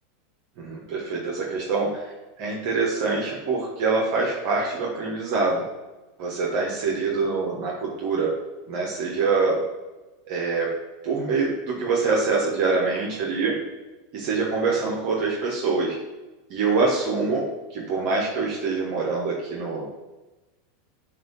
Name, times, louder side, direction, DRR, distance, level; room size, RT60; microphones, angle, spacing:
voice 1, 0.6-2.1 2.4-5.6 6.2-8.3 8.7-9.6 10.3-10.7 11.0-13.5 14.1-16.0 16.5-17.4 17.7-19.9, right 4 dB, 60° right, -2 dB, 1.4 m, -25 dB
7.4 x 2.8 x 5.5 m, 1.1 s
hypercardioid pair, 115°, 0 cm